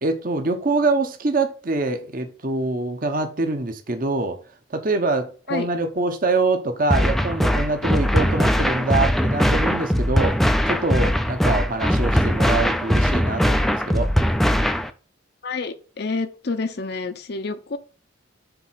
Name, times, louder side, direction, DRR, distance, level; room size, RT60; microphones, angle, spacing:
voice 1, 0.0-4.4 4.7-14.1, right 3 dB, 40° right, 0.9 m, -24 dB
sound 1, 6.9-14.9, equal, ahead, 0.4 m, -20 dB
voice 2, 15.4-17.8, left 3 dB, 50° left, 0.6 m, -28 dB
7.0 x 4.2 x 5.6 m
head